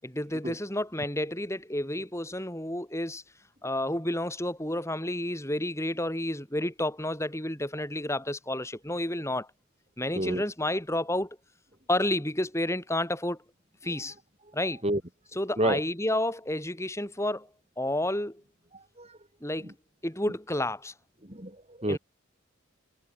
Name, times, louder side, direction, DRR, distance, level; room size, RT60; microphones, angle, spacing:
voice 1, 0.0-3.2 3.6-9.5 10.0-11.4 11.9-13.4 13.8-14.1 14.5-14.8 15.3-17.5 17.8-18.4 19.4-19.7 20.0-20.9 21.9-22.0, left 1 dB, 15° left, 7.6 m, -30 dB
voice 2, 18.7-19.2 19.6-19.7 21.3-22.0, right 1 dB, 30° right, 5.3 m, -29 dB
head